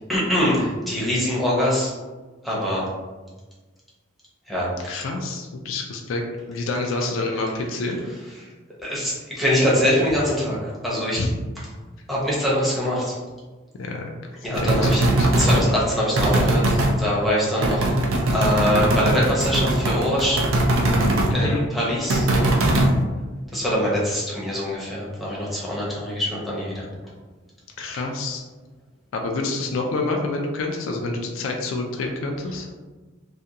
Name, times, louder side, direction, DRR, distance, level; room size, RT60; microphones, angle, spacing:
voice 1, 0.1-1.9 2.4-2.9 4.5-5.0 8.8-11.2 12.1-13.2 14.4-15.1 15.4-17.9 18.3-20.5 21.3-22.3 23.5-26.8, equal, ahead, -7 dB, 0.7 m, -23 dB
voice 2, 4.9-6.2 6.5-8.0 11.2-11.3 13.7-14.1 14.6-15.3 21.3-21.6 27.8-28.4 29.1-32.6, left 3 dB, 75° left, 2 dB, 0.3 m, -27 dB
sound 1, 14.5-15.7 16.2-16.9 17.6-21.3 22.1-22.9, right 1 dB, 90° right, 0.5 m, -20 dB
2.4 x 2.2 x 2.7 m, 1.3 s
head